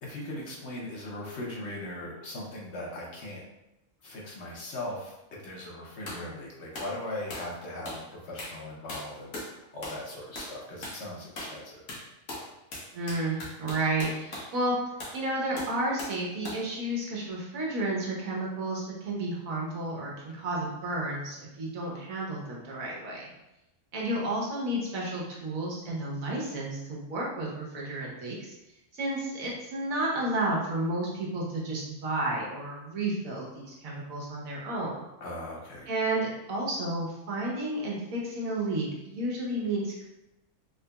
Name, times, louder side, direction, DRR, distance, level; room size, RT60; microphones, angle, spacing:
voice 1, 0.0-3.4 4.0-5.2 5.4-11.8 35.2-35.9, left 1 dB, 60° left, -3 dB, 1.0 m, -39 dB
sound 1, 6.1-6.3 6.7-6.9 7.3-7.5 7.9-8.1 8.4-8.6 8.9-9.5 9.8-10.1 10.4-10.6 10.8-11.0 11.4-11.6 11.9-14.5 15.0-15.2 15.6-16.2 16.5-16.7, left 1 dB, 85° left, 1.4 m, -39 dB
voice 2, 12.9-14.8 15.1-23.3 23.9-28.5 28.9-35.0 35.9-40.1, right 2 dB, 90° right, -3 dB, 1.3 m, -32 dB
3.7 x 2.8 x 2.3 m, 0.94 s
omnidirectional pair, 1.4 m